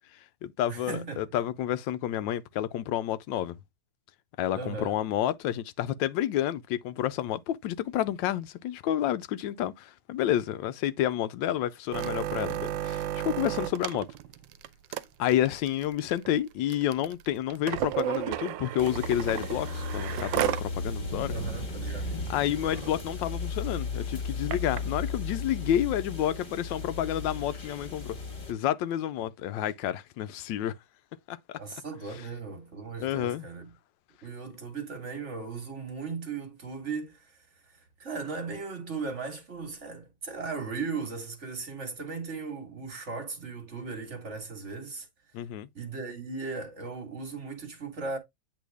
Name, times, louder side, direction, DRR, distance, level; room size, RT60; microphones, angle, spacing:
voice 1, 0.1-3.5 4.4-14.1 15.2-21.3 22.3-28.2 28.5-30.8 31.3-31.6 33.0-33.5 45.3-45.7, left 11 dB, 80° left, 1.3 m, -30 dB
voice 2, 0.7-1.2 4.5-5.0 21.3-22.2 29.2-29.3 31.6-33.7 34.2-37.4 37.7-45.1 45.7-48.2, right 4 dB, 40° right, 1.8 m, -37 dB
sound 1, 11.9-20.7 21.1-21.2 21.5-21.8 22.3-22.4 22.6-22.9 23.6-24.8 25.5-25.6, right 13 dB, 85° right, 1.3 m, -33 dB
sound 2, 18.8-28.5, left 4 dB, 30° left, 1.6 m, -35 dB
8.2 x 3.4 x 3.4 m
omnidirectional pair, 2.0 m